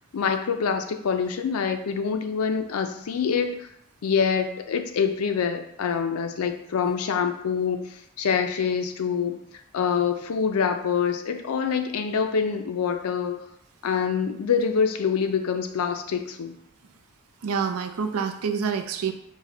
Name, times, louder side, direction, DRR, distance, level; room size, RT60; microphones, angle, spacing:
voice 1, 0.1-3.7 4.0-7.9 8.2-9.4 9.7-13.4 13.8-16.5, left 6 dB, 80° left, 7 dB, 0.4 m, -25 dB
voice 2, 17.4-19.1, right 6 dB, 80° right, 7 dB, 0.4 m, -27 dB
4.8 x 2.1 x 3.7 m, 0.73 s
head